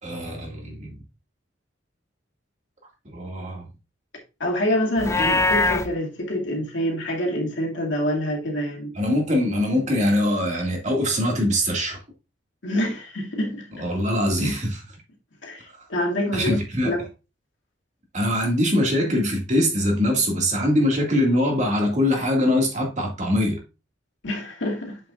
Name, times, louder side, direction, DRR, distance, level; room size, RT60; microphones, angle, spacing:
voice 1, 0.0-1.0 3.0-3.7 8.9-12.0 13.8-15.0 15.8-15.9 16.3-17.1 18.1-23.6, left 1 dB, 40° right, 2.1 m, -23 dB
voice 2, 4.4-8.9 12.6-13.8 15.4-16.6 16.9-17.0 24.2-25.0, equal, 75° left, 2.2 m, -26 dB
Livestock farm animals working animals, 5.0-5.9, left 3 dB, 15° left, 0.4 m, -21 dB
7.6 x 6.8 x 2.5 m
head